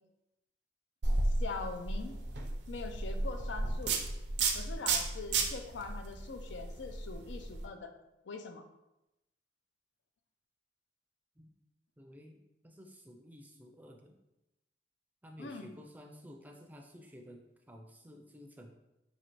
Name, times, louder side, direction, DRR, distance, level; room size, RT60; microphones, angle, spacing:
sound 1, 1.0-7.6, right 3 dB, 75° right, 0.6 m, -33 dB
voice 1, 1.4-2.2 2.7-4.0 4.5-7.9 8.3-8.6 15.4-15.7, left 4 dB, 90° left, 7 dB, 0.5 m, -42 dB
voice 2, 12.0-12.4 12.6-14.1 15.2-17.4 17.7-18.7, equal, 10° right, 2 dB, 0.4 m, -52 dB
5.5 x 2.8 x 3.0 m, 0.94 s
head